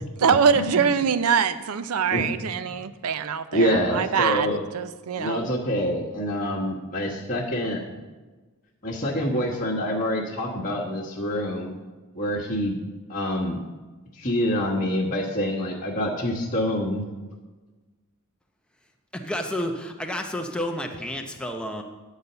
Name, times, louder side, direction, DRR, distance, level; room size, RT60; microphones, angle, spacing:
voice 1, 0.2-5.5, right 6 dB, 90° right, 12 dB, 0.5 m, -23 dB
voice 2, 3.5-4.6 5.2-8.0 8.8-11.8 12.1-12.8 13.1-13.7 14.2-17.0, equal, 35° left, -5 dB, 1.3 m, -26 dB
voice 3, 19.1-21.8, left 1 dB, 5° left, 3 dB, 0.7 m, -30 dB
10.0 x 4.1 x 6.7 m, 1.3 s
head